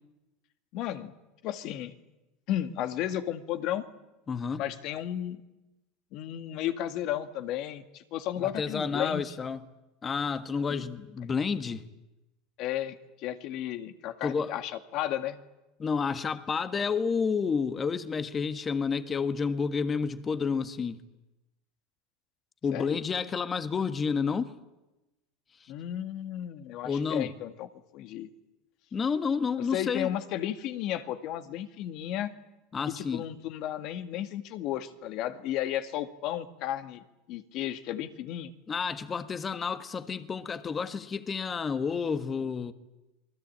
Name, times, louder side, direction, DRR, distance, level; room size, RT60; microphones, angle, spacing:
voice 1, 0.7-1.1 1.4-1.9 2.5-3.9 4.6-5.4 6.1-9.4 10.7-10.9 12.6-15.4 22.7-23.0 25.7-27.7 27.9-28.3 29.6-32.3 32.9-38.5, left 12 dB, 55° left, 2.0 m, -34 dB
voice 2, 4.3-4.6 8.6-9.6 10.0-11.8 14.2-14.5 15.8-21.0 22.6-24.5 25.6-25.7 26.8-27.3 28.9-30.1 32.7-33.2 38.7-42.7, left 5 dB, 25° left, 1.6 m, -30 dB
27.5 x 20.5 x 8.8 m
supercardioid pair, 105°, 0 cm